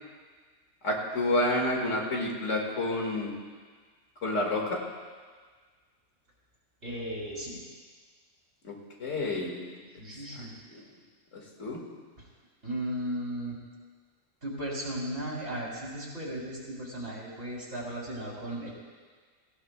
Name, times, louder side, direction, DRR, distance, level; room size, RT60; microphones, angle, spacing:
voice 1, 0.8-3.3 4.2-4.8 8.6-8.7 9.0-9.8 10.7-10.8 11.6-11.8, left 1 dB, 85° left, -1 dB, 2.3 m, -29 dB
voice 2, 6.8-7.6 9.9-10.5 12.2-12.3 12.6-13.6 14.4-18.7, right 1 dB, 60° right, -4 dB, 3.4 m, -36 dB
18.0 x 16.0 x 2.3 m, 1.5 s
omnidirectional pair, 1.2 m